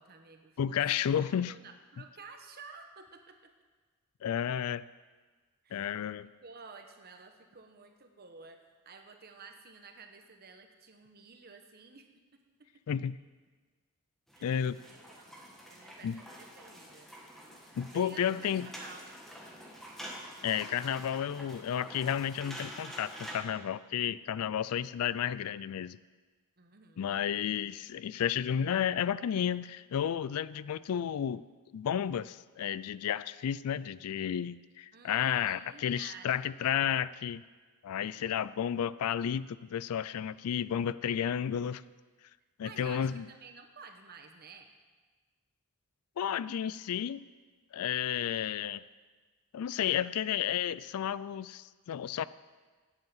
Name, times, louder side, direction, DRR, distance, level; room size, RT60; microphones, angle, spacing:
voice 1, 0.0-1.1 1.4-3.5 5.6-6.0 6.4-12.4 14.3-14.5 14.9-17.1 17.6-19.2 26.6-27.1 34.9-36.6 42.6-44.7, right 4 dB, 45° right, 5 dB, 1.1 m, -52 dB
voice 2, 0.6-1.5 4.2-4.8 5.7-6.3 12.9-13.2 14.4-14.8 16.0-16.2 17.8-18.7 20.4-26.0 27.0-31.4 31.7-37.4 37.8-41.8 42.6-43.2 46.2-47.3 47.7-48.8 49.5-52.2, left 9 dB, 80° left, 18 dB, 0.3 m, -32 dB
sound 1, 14.3-23.4, equal, ahead, 1.4 m, -47 dB
9.3 x 8.2 x 7.2 m, 1.4 s
head